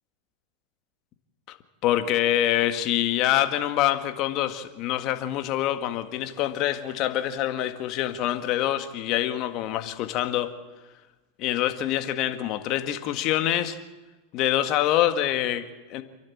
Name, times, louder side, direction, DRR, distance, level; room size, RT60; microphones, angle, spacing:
voice 1, 1.8-10.5 11.4-13.8 14.3-16.0, left 12 dB, 45° left, 8 dB, 1.9 m, -25 dB
28.0 x 11.5 x 8.6 m, 1.2 s
supercardioid pair, 130°, 0 cm